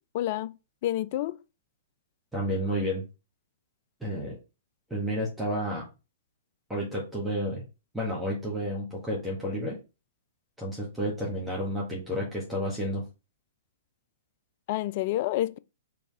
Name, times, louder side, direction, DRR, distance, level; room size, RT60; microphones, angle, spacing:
voice 1, 0.1-0.6 0.8-1.4 14.7-15.6, left 14 dB, 45° left, 0.3 m, -28 dB
voice 2, 2.3-3.0 4.0-4.4 4.9-5.9 6.7-7.6 7.9-9.8 10.6-13.0, equal, 5° right, 1.6 m, -31 dB
4.6 x 3.4 x 3.4 m
figure-of-eight pair, 110°, 0 cm